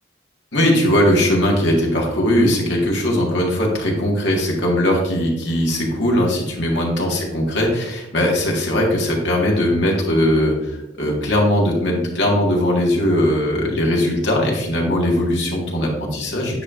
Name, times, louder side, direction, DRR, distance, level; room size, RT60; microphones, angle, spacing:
voice 1, 0.5-16.6, left 1 dB, 75° left, -1 dB, 1.7 m, -19 dB
9.7 x 5.3 x 2.5 m, 0.94 s
head